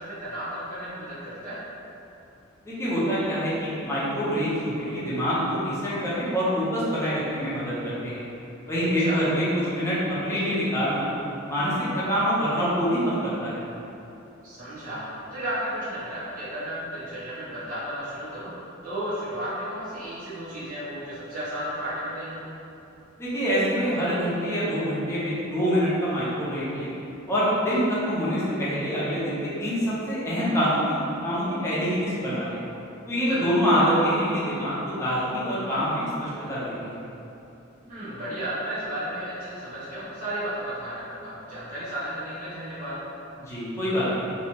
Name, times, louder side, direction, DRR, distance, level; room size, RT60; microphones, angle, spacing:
voice 1, 0.0-1.6 9.0-9.2 14.4-15.0 15.3-18.5 18.8-22.5 33.3-33.5 37.8-42.9, right 1 dB, 45° right, -15 dB, 1.2 m, -33 dB
voice 2, 2.6-8.2 8.7-9.4 9.7-10.0 10.2-11.1 11.5-13.6 23.2-26.9 27.3-29.8 30.1-32.6 33.1-37.0 43.5-44.2, equal, 15° left, -10 dB, 0.8 m, -25 dB
3.2 x 3.0 x 2.9 m, 2.9 s
head